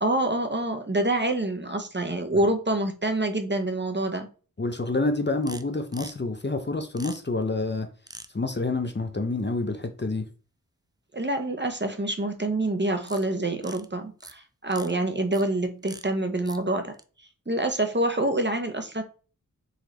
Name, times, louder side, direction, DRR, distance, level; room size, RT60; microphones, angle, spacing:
voice 1, 0.0-4.3 11.1-17.0 17.5-19.0, right 1 dB, 30° right, 0.8 m, -26 dB
voice 2, 4.6-7.9 8.3-10.3, left 3 dB, 30° left, 0.7 m, -28 dB
sound 1, 5.4-5.6 5.9-6.1 7.0-7.2 8.1-8.3 13.0-13.2 13.5-13.8 14.2-14.3 14.7-14.9 15.3-15.4 15.8-16.0 16.5-16.6 16.9-17.0, right 2 dB, 10° right, 0.4 m, -43 dB
4.1 x 3.9 x 3.1 m
wide cardioid pair, 55°, 36 cm